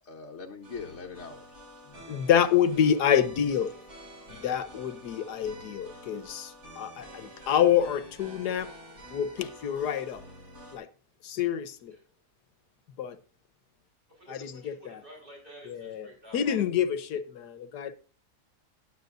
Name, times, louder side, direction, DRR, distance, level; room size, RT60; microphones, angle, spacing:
voice 1, 0.0-2.2 4.3-4.4, left 5 dB, 50° left, 1.2 m, -43 dB
sound 1, 0.6-10.8, equal, 75° right, 6.5 m, -48 dB
voice 2, 2.1-3.7 4.3-8.7 9.1-10.2 10.7-10.9 11.2-11.9 13.0-13.2 14.3-15.0 15.6-16.1 16.3-17.9, left 9 dB, 85° left, 1.5 m, -27 dB
voice 3, 14.1-16.6, equal, 30° right, 4.8 m, -50 dB
19.5 x 8.1 x 2.6 m
omnidirectional pair, 1.7 m